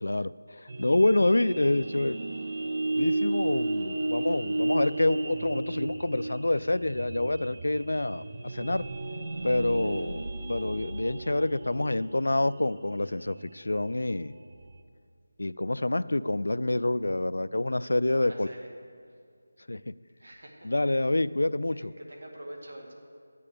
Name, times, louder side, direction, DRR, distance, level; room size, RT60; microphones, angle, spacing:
voice 1, 0.0-2.2 3.0-8.9 9.4-14.3 15.4-18.5 19.7-19.9 20.6-21.9, left 2 dB, 85° left, 16 dB, 0.3 m, -27 dB
sound 1, 0.7-14.8, right 2 dB, 40° right, 0.7 m, -34 dB
voice 2, 17.7-18.7 19.1-19.2 20.2-21.1 21.7-22.9, right 1 dB, 70° right, 1 dB, 2.0 m, -46 dB
11.0 x 8.3 x 5.0 m, 2.3 s
figure-of-eight pair, 175°, 0 cm